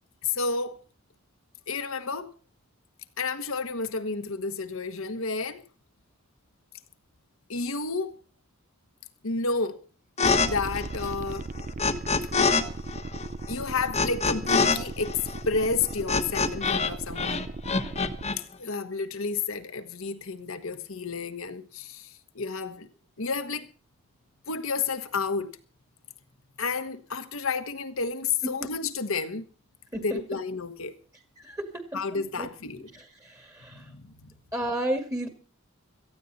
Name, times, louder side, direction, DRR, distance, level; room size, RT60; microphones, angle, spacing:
voice 1, 0.2-0.8 1.7-2.3 3.2-5.6 7.5-8.1 9.2-9.8 10.4-11.5 13.5-17.5 18.4-22.9 23.2-23.7 24.5-25.5 26.6-29.5 29.9-31.0 31.9-32.9 33.7-34.2, left 4 dB, 65° left, 1.4 m, -31 dB
sound 1, 10.2-10.5 10.7-12.6 12.9-16.9 17.2-18.4, left 4 dB, 30° left, 1.3 m, -25 dB
sound 2, 10.2-18.2, right 2 dB, 35° right, 0.6 m, -37 dB
voice 2, 34.5-35.3, right 1 dB, 15° right, 2.2 m, -30 dB
17.5 x 14.5 x 4.2 m
head